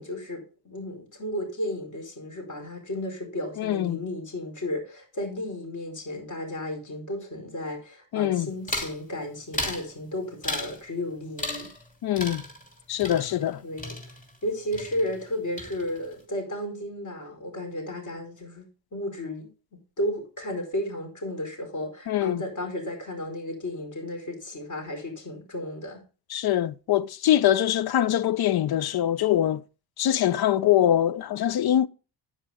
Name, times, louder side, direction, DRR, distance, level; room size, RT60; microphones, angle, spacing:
voice 1, 0.0-11.7 13.6-14.0 14.4-18.7 18.9-26.0, left 1 dB, 45° left, 4.6 m, -33 dB
voice 2, 3.6-4.0 8.1-8.5 12.0-12.4 12.9-13.6 22.1-22.4 26.3-29.6 30.0-31.9, left 11 dB, 60° left, 0.6 m, -23 dB
sound 1, 8.7-9.0 9.5-9.9 10.4-10.8 11.4-11.9 12.2-14.5 14.7-15.3 15.6-16.1, left 1 dB, 20° left, 2.8 m, -34 dB
9.9 x 8.7 x 3.5 m
cardioid pair, 125°, 43 cm